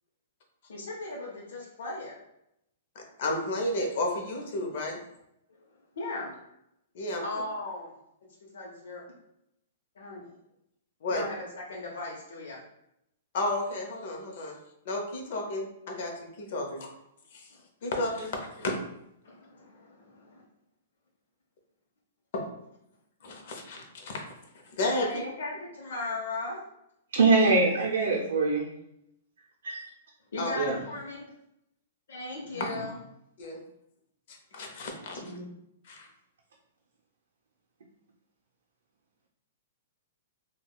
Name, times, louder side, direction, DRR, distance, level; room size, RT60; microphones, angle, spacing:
voice 1, 0.7-2.2 5.6-5.7 6.0-6.4 7.2-7.9 8.4-9.0 9.9-10.3 11.1-12.6 17.5-17.7 19.2-20.4 25.0-26.6 30.3-31.3 32.1-33.0 35.2-35.5, left 2 dB, 85° left, 0.8 m, -37 dB
voice 2, 3.2-5.0 6.9-7.2 11.0-11.2 13.3-14.6 14.9-16.1 16.4-16.9 17.3-17.4 17.8-18.7 22.3-22.4 23.2-24.2 24.8-25.1 30.4-30.5 32.6-32.7 33.4-33.6 34.3-35.2 35.9-36.1, left 2 dB, 55° left, 0.7 m, -32 dB
voice 3, 27.1-28.7 29.6-29.8 30.5-30.8, right 3 dB, 90° right, 0.5 m, -23 dB
3.5 x 2.3 x 2.2 m
hypercardioid pair, 160°, 0 cm